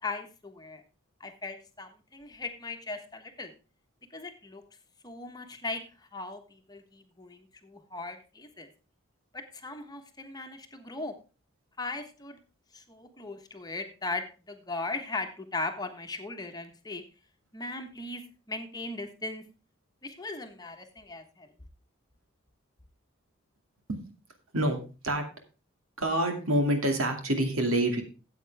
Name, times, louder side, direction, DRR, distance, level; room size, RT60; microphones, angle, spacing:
voice 1, 0.0-0.8 1.2-3.5 4.1-4.6 5.0-8.7 9.3-11.1 11.8-12.4 12.7-17.0 17.5-19.4 20.0-21.5, left 3 dB, 20° left, 6 dB, 1.2 m, -38 dB
voice 2, 24.5-25.3 26.0-28.0, right 1 dB, 85° right, 4 dB, 2.4 m, -27 dB
13.5 x 8.3 x 3.5 m, 0.32 s
head